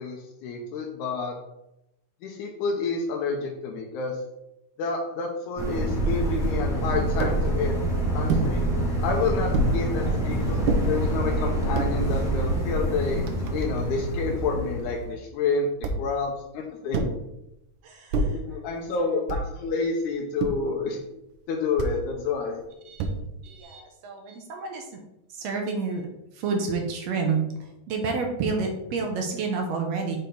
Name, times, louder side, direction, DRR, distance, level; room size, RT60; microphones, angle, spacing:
voice 1, 0.0-1.4 2.2-4.2 4.8-7.8 8.1-8.6 9.0-13.2 13.5-15.7 16.0-17.1 18.3-21.0 21.5-22.6, left 4 dB, 80° left, 0 dB, 2.1 m, -29 dB
sound 1, 5.6-15.1, right 1 dB, 5° right, 0.6 m, -26 dB
sound 2, 7.2-7.4 8.3-8.5 9.5-9.8 10.6-10.8 11.6-11.9 12.7-12.8 13.0-14.0 15.8-16.2 16.9-17.2 18.1-18.4 19.3-19.6 20.4-20.7 21.8-22.0 23.0-23.4, right 2 dB, 85° right, 2.2 m, -27 dB
voice 2, 17.8-18.4 19.0-19.2 22.8-23.1 23.4-25.0 25.3-26.1 26.3-27.4 27.9-30.2, right 4 dB, 70° right, 2 dB, 1.7 m, -29 dB
6.5 x 4.3 x 3.9 m, 0.87 s
omnidirectional pair, 3.7 m